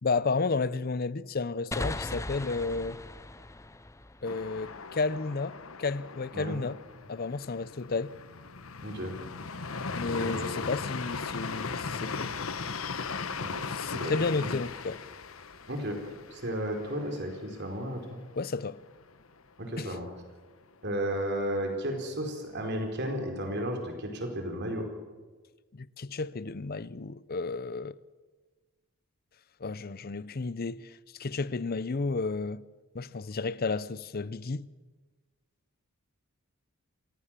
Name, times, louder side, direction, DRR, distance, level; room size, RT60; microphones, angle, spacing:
voice 1, 0.0-3.0 4.2-6.8 7.1-8.1 9.9-12.3 13.7-15.0 18.3-18.8 19.8-20.0 25.7-27.9 29.6-32.6 32.9-34.7, left 4 dB, 45° left, 0.6 m, -32 dB
sound 1, 1.7-5.2, left 2 dB, 15° left, 0.7 m, -38 dB
sound 2, 4.2-18.0 18.3-18.4 18.8-19.3, left 4 dB, 75° left, 1.2 m, -38 dB
voice 2, 8.8-9.1 10.2-10.5 13.4-14.5 15.7-16.0 16.3-18.2 19.6-20.1 20.8-24.9, equal, 55° right, 4.5 m, -34 dB
27.0 x 17.0 x 7.5 m
head